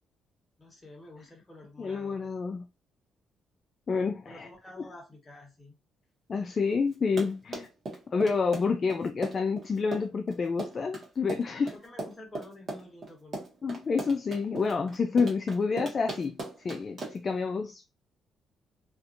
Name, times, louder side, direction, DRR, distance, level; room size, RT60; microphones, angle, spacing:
voice 1, 0.6-2.3 4.2-5.8 11.7-13.5, left 1 dB, 25° left, 1.2 m, -49 dB
voice 2, 1.8-2.7 3.9-4.5 6.3-7.7 8.1-11.8 13.6-17.8, left 5 dB, 40° left, 0.3 m, -29 dB
Run, 6.9-17.3, right 2 dB, 45° right, 1.1 m, -38 dB
2.7 x 2.5 x 2.4 m
cardioid pair, 90°, 0 cm